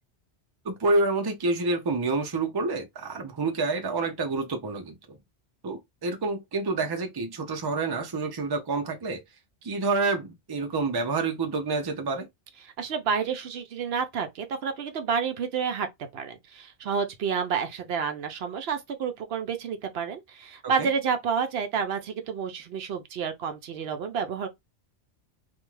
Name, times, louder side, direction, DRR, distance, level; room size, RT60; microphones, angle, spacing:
voice 1, 0.6-5.2 5.6-9.2 9.6-12.3 20.6-20.9, right 3 dB, 30° right, 0.4 m, -28 dB
voice 2, 12.6-15.9 16.1-24.5, right 6 dB, 70° right, 0.8 m, -29 dB
2.5 x 2.3 x 3.0 m
omnidirectional pair, 1.1 m